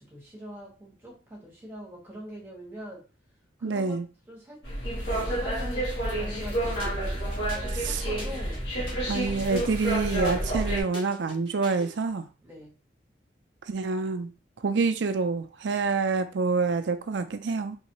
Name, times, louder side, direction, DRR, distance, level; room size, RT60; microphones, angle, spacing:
voice 1, 0.0-3.0 3.6-4.6 5.0-7.2 7.5-9.7 12.4-12.8, equal, 10° right, 1.7 m, -44 dB
voice 2, 3.6-4.1 7.8-8.0 9.1-12.3 13.7-14.3 14.6-17.8, right 4 dB, 85° right, 0.5 m, -27 dB
sound 1, 4.6-10.8, right 1 dB, 75° left, 1.6 m, -29 dB
sound 2, 6.8-12.0, left 2 dB, 30° left, 1.4 m, -45 dB
3.6 x 3.1 x 3.0 m
head